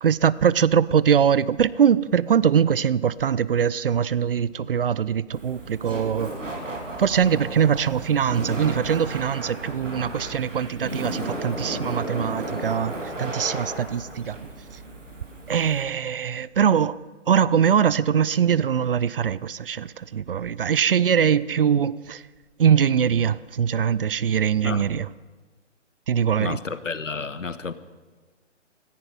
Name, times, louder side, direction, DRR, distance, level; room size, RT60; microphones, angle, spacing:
voice 1, 0.0-6.3 7.0-14.5 15.5-17.0 17.3-22.2 22.6-25.1 26.1-26.6, right 8 dB, 50° right, 0.5 m, -22 dB
Laughter, 5.3-15.8, right 1 dB, 80° right, 3.5 m, -34 dB
voice 2, 26.4-27.7, left 4 dB, 90° left, 1.1 m, -31 dB
17.0 x 14.0 x 5.3 m
figure-of-eight pair, 140°, 37 cm